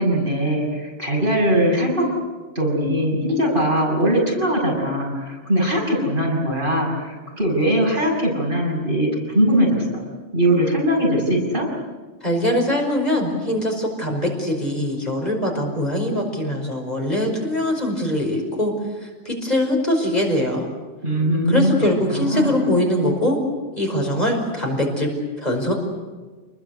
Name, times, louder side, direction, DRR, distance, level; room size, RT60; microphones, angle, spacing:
voice 1, 0.0-2.1 2.6-10.0 10.3-11.7 21.0-21.7 22.0-22.5, equal, 45° right, -1 dB, 7.3 m, -20 dB
voice 2, 12.2-18.7 19.0-20.7 21.5-23.4 23.8-25.1 25.4-25.7, left 1 dB, 35° left, 1 dB, 5.4 m, -22 dB
29.0 x 21.0 x 8.2 m, 1.3 s
omnidirectional pair, 1.2 m